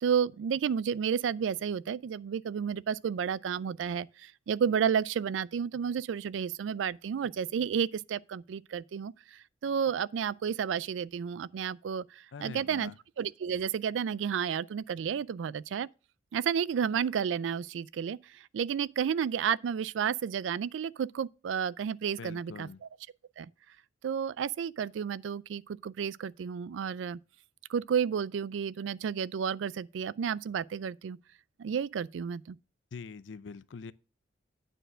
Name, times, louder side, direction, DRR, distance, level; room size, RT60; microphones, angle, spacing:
voice 1, 0.0-9.1 9.6-12.0 12.4-12.9 13.2-15.9 16.3-18.2 18.5-22.7 23.4-23.5 24.0-27.2 27.7-31.2 31.6-32.6, right 7 dB, 85° right, 0.3 m, -31 dB
voice 2, 12.3-12.9 22.2-22.8 32.9-33.9, left 5 dB, 80° left, 0.5 m, -44 dB
9.0 x 4.4 x 6.2 m
head